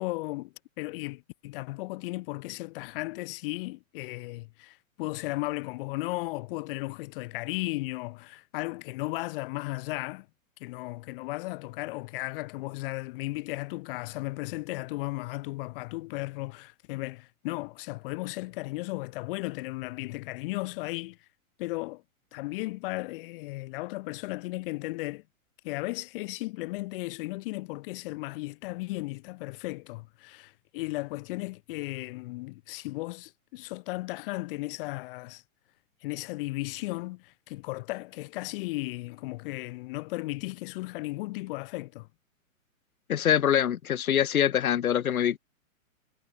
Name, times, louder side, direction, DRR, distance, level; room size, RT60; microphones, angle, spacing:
voice 1, 0.0-10.3 10.6-21.2 21.6-22.0 22.3-25.2 25.6-35.4 36.0-42.1, left 21 dB, 40° left, 1.8 m, -35 dB
voice 2, 43.1-45.4, left 10 dB, 80° left, 2.6 m, -24 dB
hypercardioid pair, 150°, 42 cm